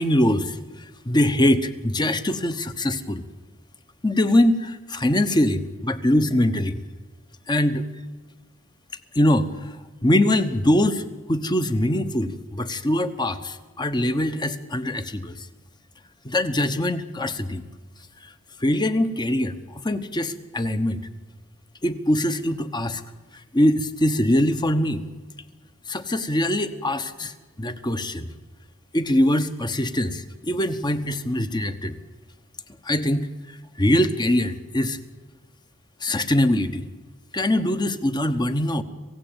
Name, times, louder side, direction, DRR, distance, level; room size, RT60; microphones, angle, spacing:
voice 1, 0.0-3.2 4.0-6.8 7.5-7.9 9.1-9.8 10.0-15.5 16.2-17.6 18.2-18.3 18.6-21.0 21.8-23.0 23.5-25.0 25.9-27.3 27.6-28.3 28.9-32.0 32.8-35.0 36.0-36.8 37.3-38.8, left 1 dB, 20° left, 10 dB, 1.2 m, -23 dB
26.5 x 16.5 x 9.0 m, 1.3 s
head